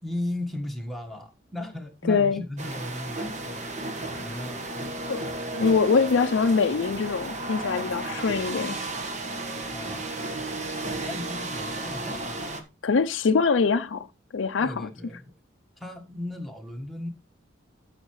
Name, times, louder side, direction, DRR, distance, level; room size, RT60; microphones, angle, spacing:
voice 1, 0.0-3.9 4.2-4.7 9.7-10.3 11.0-12.4 14.6-15.3 15.8-17.1, left 1 dB, ahead, 1.5 m, -36 dB
voice 2, 2.1-2.4 5.1-8.7 12.8-14.1 14.3-14.7, left 5 dB, 80° left, 0.5 m, -23 dB
sound 1, 2.6-12.6, right 2 dB, 40° right, 1.4 m, -33 dB
13.5 x 5.8 x 3.1 m
head